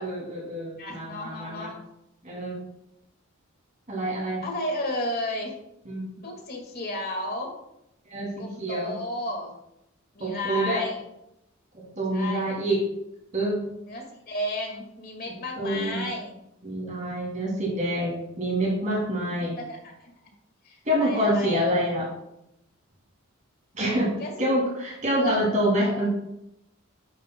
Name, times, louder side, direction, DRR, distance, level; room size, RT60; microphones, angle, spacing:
voice 1, 0.0-1.7 2.2-2.6 3.9-4.4 5.9-6.0 8.1-8.3 8.6-8.9 10.2-10.8 11.7-12.8 13.3-13.6 15.6-16.0 16.6-19.6 20.9-22.1 23.7-26.1, right 1 dB, 35° right, -4 dB, 2.3 m, -26 dB
voice 2, 0.8-1.7 4.4-5.5 6.2-7.5 8.4-9.5 10.1-11.0 12.1-12.5 13.9-16.4 19.2-20.1 20.7-21.6 24.2-24.5 25.2-25.4 25.8-26.1, left 1 dB, 45° left, 1 dB, 1.8 m, -33 dB
10.0 x 7.3 x 2.2 m, 0.83 s
head